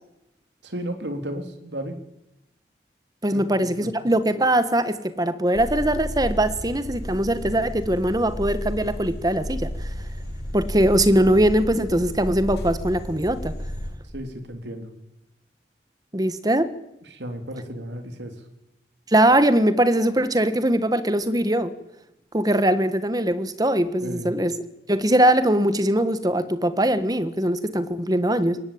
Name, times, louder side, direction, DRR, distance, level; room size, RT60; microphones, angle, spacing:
voice 1, 0.6-2.0 3.3-3.4 14.1-14.9 17.1-18.3 24.0-24.3, equal, 90° right, 7 dB, 3.2 m, -33 dB
voice 2, 3.2-9.9 10.5-13.5 16.1-16.7 19.1-21.7 22.3-24.6 24.9-28.6, right 1 dB, 20° right, 12 dB, 1.4 m, -21 dB
sound 1, 5.5-13.9, equal, 65° left, 5.5 m, -32 dB
23.0 x 19.5 x 8.7 m, 0.89 s
head